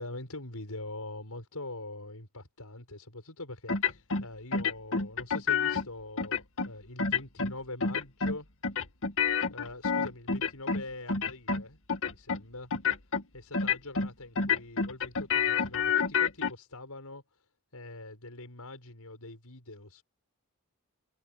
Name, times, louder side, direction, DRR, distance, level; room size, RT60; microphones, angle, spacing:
voice 1, 0.0-8.5 9.5-11.8 12.0-12.7 13.3-17.4 17.7-20.0, left 2 dB, 85° left, 6.3 m, -43 dB
sound 1, 3.7-4.2 4.5-5.9 6.2-6.7 7.0-7.5 7.8-8.4 8.6-10.8 11.1-11.6 11.9-12.4 12.7-13.2 13.5-14.1 14.4-16.5, left 5 dB, 65° left, 2.2 m, -28 dB
head